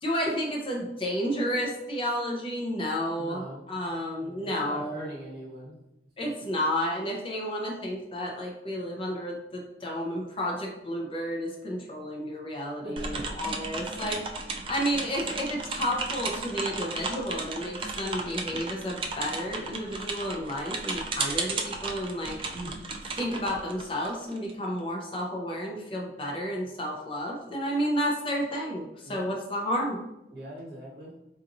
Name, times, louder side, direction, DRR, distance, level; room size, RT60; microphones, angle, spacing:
voice 1, 0.0-5.1 6.2-22.4 23.2-30.0, equal, 30° left, -1 dB, 0.6 m, -31 dB
voice 2, 3.1-3.6 4.2-5.8 6.2-6.3 12.8-13.4 22.5-22.7 29.0-29.2 30.3-31.1, right 1 dB, 65° right, -4 dB, 1.3 m, -41 dB
sound 1, 13.0-24.5, right 3 dB, 30° right, 0.3 m, -34 dB
3.9 x 2.9 x 2.6 m, 0.87 s
head